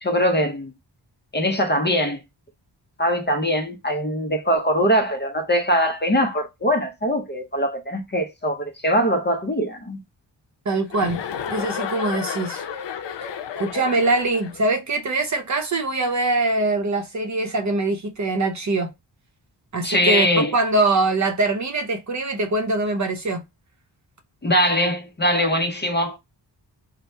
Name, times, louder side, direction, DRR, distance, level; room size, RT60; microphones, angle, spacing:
voice 1, 0.0-0.7 1.3-2.2 3.0-10.0 19.8-20.5 24.4-26.2, equal, 25° left, 0.6 m, -22 dB
voice 2, 10.6-11.2 11.5-12.7 13.6-18.9 19.7-23.4, right 2 dB, 40° right, 0.7 m, -23 dB
Chuckle chortle, 10.9-14.7, left 8 dB, 75° left, 0.6 m, -31 dB
2.7 x 2.1 x 3.3 m
wide cardioid pair, 90°, 43 cm